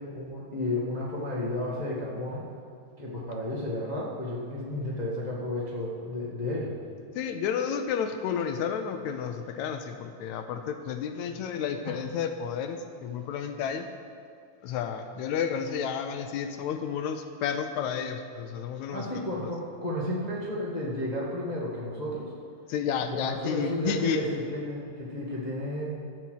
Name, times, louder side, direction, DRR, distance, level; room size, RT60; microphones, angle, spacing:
voice 1, 0.0-2.5 3.0-6.7 18.9-22.3 23.0-25.9, left 1 dB, 20° left, -5 dB, 1.0 m, -32 dB
voice 2, 7.2-13.9 14.6-19.1 22.7-24.2, left 7 dB, 80° left, 7 dB, 2.0 m, -31 dB
13.5 x 5.6 x 7.9 m, 2.3 s
omnidirectional pair, 3.3 m